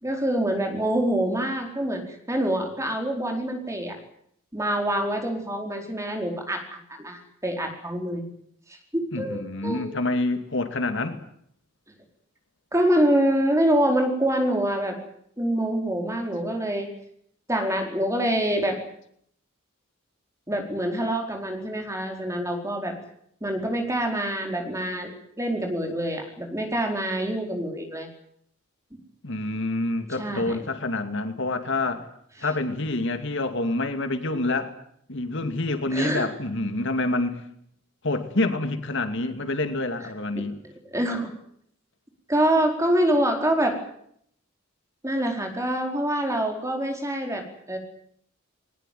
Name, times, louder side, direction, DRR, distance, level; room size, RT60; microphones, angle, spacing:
voice 1, 0.0-2.0 2.3-4.0 4.5-8.2 8.9-9.9 12.7-15.0 15.4-16.9 17.5-18.8 20.5-22.9 23.4-25.1 25.4-28.1 30.2-30.6 35.9-36.3 40.6-41.3 42.3-43.8 45.0-47.8, right 1 dB, 15° right, 3 dB, 4.6 m, -25 dB
voice 2, 9.1-11.2 29.2-32.1 32.4-34.7 35.1-37.4 38.0-40.6, left 2 dB, 60° left, 8 dB, 2.5 m, -27 dB
21.0 x 20.5 x 9.4 m, 0.69 s
head